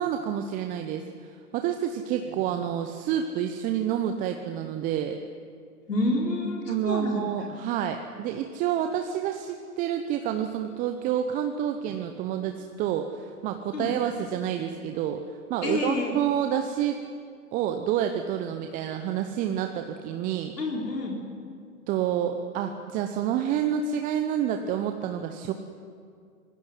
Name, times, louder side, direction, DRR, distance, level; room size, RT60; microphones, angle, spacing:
voice 1, 0.0-5.2 6.7-15.2 15.5-17.0 17.5-20.6 21.9-25.5, right 9 dB, 15° right, 6 dB, 0.8 m, -28 dB
voice 2, 5.9-7.3 13.7-13.9 15.6-16.1 20.6-21.1, left 2 dB, 80° left, -1 dB, 4.5 m, -28 dB
25.5 x 20.0 x 9.4 m, 2.3 s
figure-of-eight pair, 125°, 46 cm